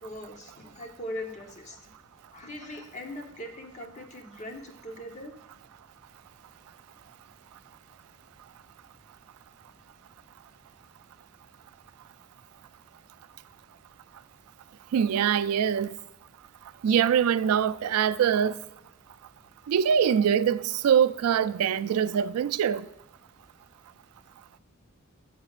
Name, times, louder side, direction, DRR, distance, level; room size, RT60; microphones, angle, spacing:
voice 1, 0.0-1.9 2.3-5.3, left 1 dB, 35° left, 1.0 m, -40 dB
voice 2, 14.9-15.9 16.8-18.6 19.7-22.9, right 8 dB, 90° right, 0.3 m, -23 dB
15.0 x 6.7 x 2.4 m
head